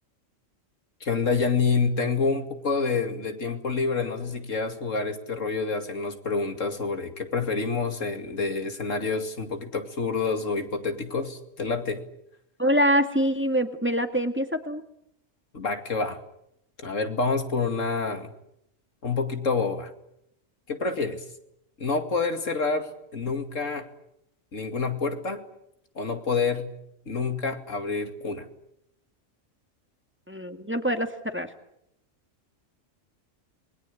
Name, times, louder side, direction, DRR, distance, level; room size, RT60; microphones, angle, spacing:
voice 1, 1.0-12.0 15.5-16.2 16.8-18.3 19.0-19.9 20.7-21.2 21.8-23.9 24.5-25.4 25.9-26.7 27.1-28.5, left 4 dB, 75° left, 6 dB, 2.8 m, -28 dB
voice 2, 12.6-14.8 30.3-31.5, equal, 10° right, 6 dB, 2.0 m, -25 dB
28.0 x 22.0 x 8.6 m, 0.79 s
omnidirectional pair, 1.3 m